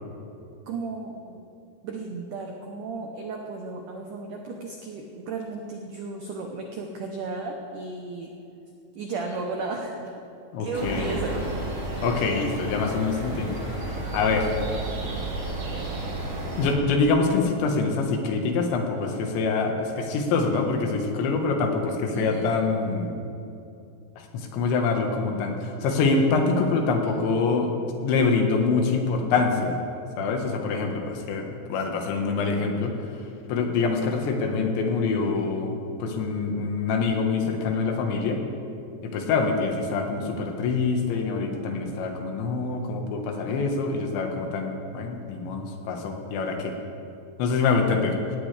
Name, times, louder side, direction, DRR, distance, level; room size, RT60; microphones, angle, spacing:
voice 1, 0.7-1.4 1.8-8.3 9.0-10.0 10.6-11.4 22.1-22.5, right 3 dB, 85° right, 2 dB, 1.8 m, -34 dB
voice 2, 10.5-11.1 12.0-13.6 14.1-14.5 16.6-23.2 24.2-27.7 28.0-29.8 30.2-33.1 33.5-38.4 39.0-46.7 47.4-48.2, left 4 dB, 80° left, 3 dB, 3.7 m, -25 dB
sound 1, 10.7-16.7, right 2 dB, 65° right, 6.6 m, -32 dB
18.0 x 17.0 x 3.4 m, 2.7 s
omnidirectional pair, 5.1 m